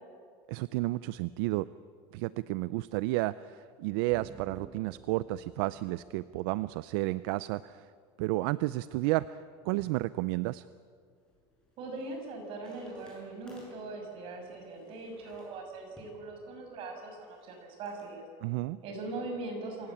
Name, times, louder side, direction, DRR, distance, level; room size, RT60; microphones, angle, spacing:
voice 1, 0.5-1.7 2.1-7.9 8.2-10.6 18.4-18.8, right 18 dB, 70° right, 17 dB, 0.5 m, -32 dB
sound 1, 4.1-7.7, right 4 dB, 15° right, 1.1 m, -54 dB
sound 2, 11.1-18.1, left 1 dB, 5° left, 7.3 m, -62 dB
voice 2, 11.8-18.2 18.8-19.9, right 2 dB, 45° right, 3 dB, 6.3 m, -41 dB
27.0 x 17.0 x 8.6 m, 2.2 s
cardioid pair, 150°, 13 cm